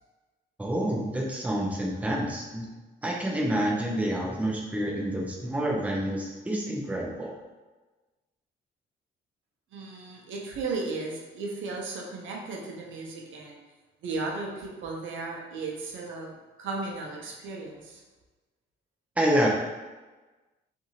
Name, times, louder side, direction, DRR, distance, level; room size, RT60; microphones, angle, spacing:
voice 1, 0.6-2.7 3.0-7.3 19.2-19.5, right 1 dB, 5° right, -3 dB, 0.6 m, -28 dB
voice 2, 9.7-13.6 14.0-16.3 16.6-18.0, right 3 dB, 75° right, -1 dB, 0.6 m, -35 dB
2.7 x 2.6 x 2.7 m, 1.2 s
cardioid pair, 90°, 20 cm